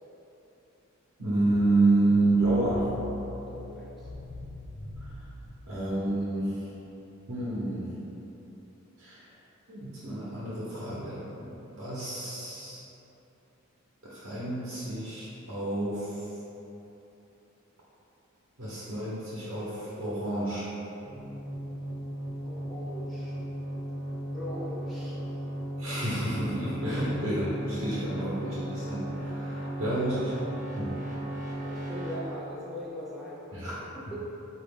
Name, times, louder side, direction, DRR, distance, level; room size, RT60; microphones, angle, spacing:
voice 1, 1.2-2.9 5.0-5.1 5.7-6.6 7.3-7.9 9.0-9.2 9.7-12.8 14.0-16.3 18.6-20.7 25.8-30.3 30.8-30.9 33.5-33.7, right 2 dB, 70° right, -9 dB, 0.8 m, -29 dB
sound 1, 2.3-6.4, left 2 dB, 70° left, 0.4 m, -43 dB
voice 2, 3.5-4.1 22.4-23.4 24.3-25.5 27.0-27.2 31.6-34.2, left 1 dB, ahead, -8 dB, 0.4 m, -41 dB
sound 2, 21.1-32.2, right 1 dB, 40° right, 0.6 m, -36 dB
4.8 x 2.4 x 3.5 m, 3.0 s
head